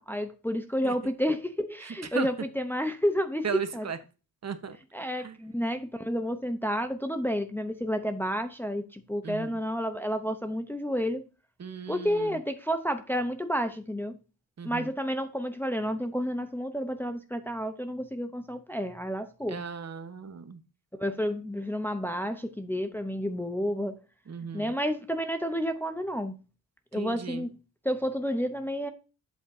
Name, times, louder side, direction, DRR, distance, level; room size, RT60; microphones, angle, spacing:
voice 1, 0.0-3.4 3.7-3.9 4.9-11.2 11.9-14.2 14.6-19.6 21.0-24.0 24.5-26.3 26.9-27.5 27.8-28.9, equal, 5° left, 0.7 m, -30 dB
voice 2, 3.4-4.0 4.4-4.8 5.2-5.4 9.2-9.5 11.6-12.3 14.6-14.9 19.5-20.6 24.3-24.7 26.9-27.5, right 6 dB, 40° right, 1.1 m, -36 dB
8.4 x 7.9 x 2.7 m
cardioid pair, 95°, 39 cm